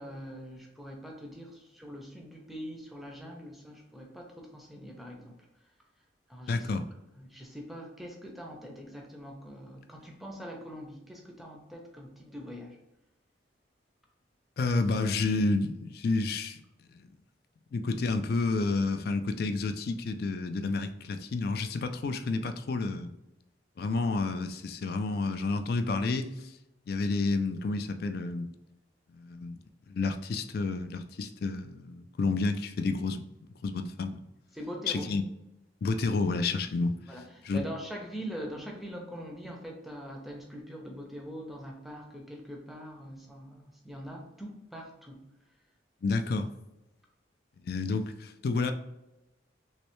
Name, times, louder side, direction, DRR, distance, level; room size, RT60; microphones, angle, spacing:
voice 1, 0.0-5.5 6.3-6.7 7.2-12.8 22.4-22.5 34.5-35.1 37.1-45.3, equal, ahead, 0 dB, 0.6 m, -43 dB
voice 2, 6.5-6.9 14.6-16.6 16.9-17.1 17.7-23.1 23.8-26.5 26.9-28.5 29.1-29.6 29.9-33.2 33.6-34.2 34.9-35.2 35.8-36.9 37.4-37.6 46.0-46.5 47.6-48.7, left 3 dB, 55° left, 9 dB, 0.3 m, -30 dB
3.2 x 3.1 x 3.0 m, 0.93 s
head